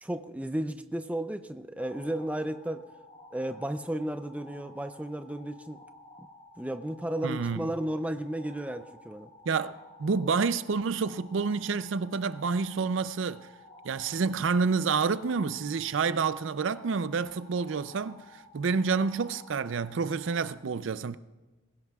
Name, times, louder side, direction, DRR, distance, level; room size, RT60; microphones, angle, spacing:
voice 1, 0.0-2.8 3.3-5.8 6.6-9.3, right 1 dB, 5° right, 0.5 m, -33 dB
sound 1, 1.8-20.5, left 2 dB, 40° left, 3.8 m, -53 dB
voice 2, 7.2-7.7 9.5-9.7 10.0-13.5 13.8-21.2, right 5 dB, 70° right, 0.5 m, -28 dB
20.5 x 16.5 x 2.4 m
head